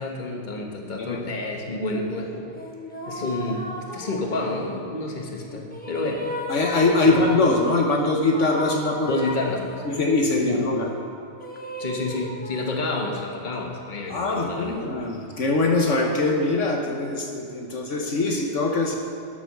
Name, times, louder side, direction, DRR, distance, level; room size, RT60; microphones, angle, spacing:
voice 1, 0.0-2.5 3.1-3.7 3.9-6.3 7.0-7.2 9.1-9.8 10.3-10.6 11.8-14.8, left 2 dB, 35° left, 1 dB, 1.4 m, -29 dB
sound 1, 2.6-4.8 5.4-7.9 8.3-10.2 11.4-13.3 14.1-16.4, equal, 5° left, 1.2 m, -36 dB
voice 2, 6.5-9.2 9.9-10.9 14.1-19.0, left 2 dB, 65° left, 1 dB, 1.4 m, -22 dB
12.0 x 7.9 x 6.6 m, 2.6 s
omnidirectional pair, 1.4 m